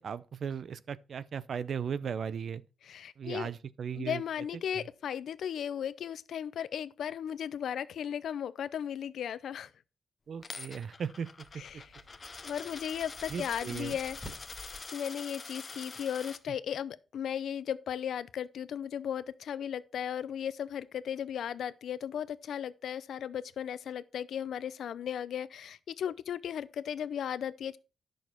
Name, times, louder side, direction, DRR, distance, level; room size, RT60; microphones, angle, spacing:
voice 1, 0.0-2.6 3.2-4.2 4.7-4.8 10.3-11.8 13.3-14.0, right 7 dB, 60° right, 0.6 m, -37 dB
voice 2, 2.9-3.5 4.0-9.7 11.6-11.8 12.4-14.2 14.9-27.8, left 9 dB, 80° left, 0.6 m, -36 dB
Coin (dropping), 10.4-16.4, left 4 dB, 35° left, 0.8 m, -45 dB
sound 1, 11.4-14.8, left 1 dB, 10° left, 2.0 m, -51 dB
10.5 x 6.5 x 4.5 m
cardioid pair, 120°, 0 cm